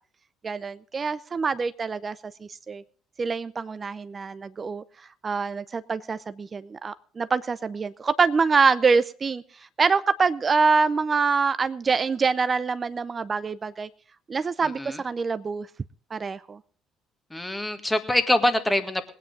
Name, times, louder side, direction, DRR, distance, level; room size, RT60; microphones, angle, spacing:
voice 1, 0.4-2.8 3.2-4.8 5.2-9.4 9.8-13.9 14.3-15.7 16.1-16.6, right 4 dB, 35° right, 15 dB, 0.5 m, -25 dB
voice 2, 14.6-15.0 17.3-19.1, left 1 dB, 10° left, 8 dB, 1.8 m, -24 dB
21.0 x 9.4 x 3.8 m, 0.43 s
hypercardioid pair, 55°, 0 cm